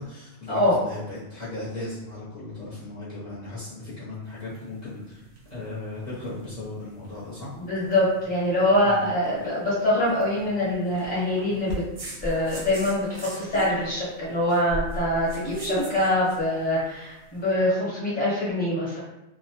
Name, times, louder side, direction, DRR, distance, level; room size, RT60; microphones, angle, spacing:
voice 1, 0.0-5.2 5.5-7.5 8.8-9.1 10.6-10.7 14.3-14.7, left 2 dB, 45° left, -11 dB, 0.8 m, -37 dB
sound 1, 4.2-17.4, equal, 55° right, 0.6 m, -38 dB
voice 2, 7.5-11.8 12.2-19.0, left 1 dB, 10° left, -8 dB, 0.9 m, -24 dB
2.2 x 2.1 x 2.7 m, 0.91 s
omnidirectional pair, 1.1 m